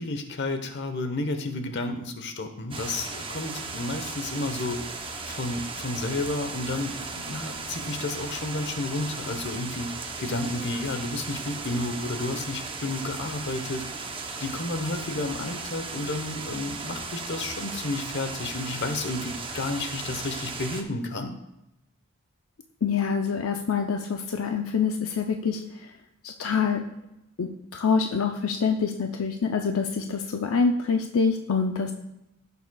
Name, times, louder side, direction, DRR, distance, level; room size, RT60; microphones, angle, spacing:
voice 1, 0.0-4.8 5.2-9.9 10.2-13.9 14.4-21.4, left 2 dB, 55° left, 7 dB, 1.0 m, -31 dB
sound 1, 2.7-20.8, right 4 dB, 25° right, 0.8 m, -36 dB
voice 2, 22.8-25.6 26.2-26.8 27.4-31.9, left 5 dB, 90° left, 4 dB, 0.6 m, -26 dB
15.5 x 6.8 x 2.3 m, 0.88 s
head